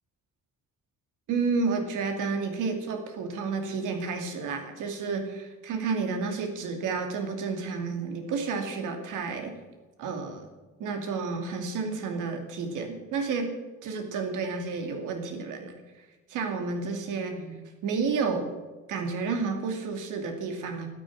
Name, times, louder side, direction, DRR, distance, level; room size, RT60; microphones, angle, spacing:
voice 1, 1.3-9.5 10.0-10.5 10.8-13.5 13.8-15.8 16.3-18.5 18.9-20.9, right 4 dB, 90° right, 5 dB, 2.5 m, -31 dB
12.5 x 10.5 x 7.6 m, 1.3 s
cardioid pair, 90°, 30 cm